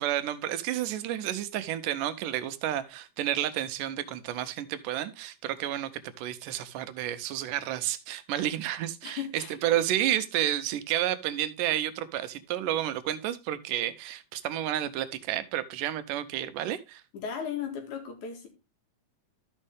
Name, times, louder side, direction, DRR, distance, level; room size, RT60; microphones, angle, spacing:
voice 1, 0.0-17.0, right 12 dB, 85° right, 2.3 m, -31 dB
voice 2, 9.0-9.5 17.1-18.5, left 7 dB, 70° left, 3.4 m, -36 dB
13.0 x 5.4 x 3.5 m
omnidirectional pair, 3.7 m